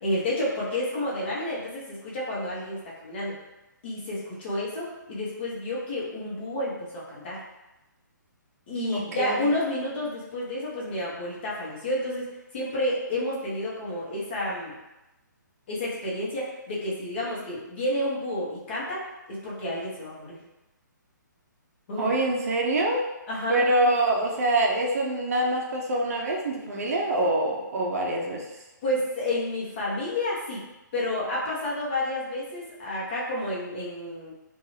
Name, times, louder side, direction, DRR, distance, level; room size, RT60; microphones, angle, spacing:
voice 1, 0.0-3.4 3.8-7.4 8.7-12.3 12.5-14.7 15.7-19.0 19.3-20.4 21.9-22.1 23.3-23.6 28.8-30.6 30.9-34.3, left 1 dB, 35° left, -6 dB, 0.8 m, -30 dB
voice 2, 8.8-9.4 22.0-23.0 23.5-28.5, right 1 dB, 50° right, 0 dB, 0.5 m, -25 dB
2.5 x 2.3 x 3.1 m, 0.98 s
hypercardioid pair, 160°, 11 cm